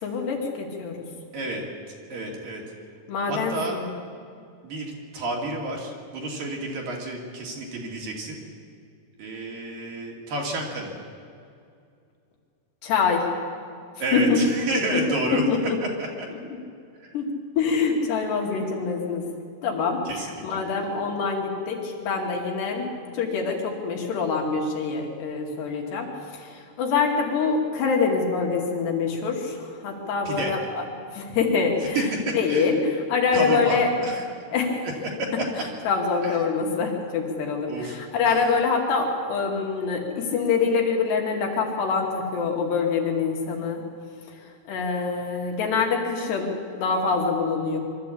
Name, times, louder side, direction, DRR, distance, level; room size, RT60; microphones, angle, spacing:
voice 1, 0.0-1.0 3.1-3.9 12.8-13.3 14.1-14.4 14.9-15.0 15.3-15.8 16.3-16.4 17.1-17.3 17.6-19.3 19.6-22.9 23.1-30.8 31.1-33.9 34.5-34.9 35.9-43.8 44.3-44.4 44.7-47.8, left 5 dB, 75° left, 0 dB, 4.4 m, -25 dB
voice 2, 2.1-2.6 3.3-3.8 4.6-8.4 9.2-10.9 14.0-15.4 16.0-16.1 17.0-17.1 20.1-20.3 30.3-30.5 32.0-32.7 33.3-34.2 35.2-35.3 36.2-36.4 37.7-38.0 38.3-38.4, right 2 dB, 55° right, 0 dB, 3.9 m, -30 dB
23.5 x 13.5 x 8.4 m, 2.4 s
omnidirectional pair, 5.0 m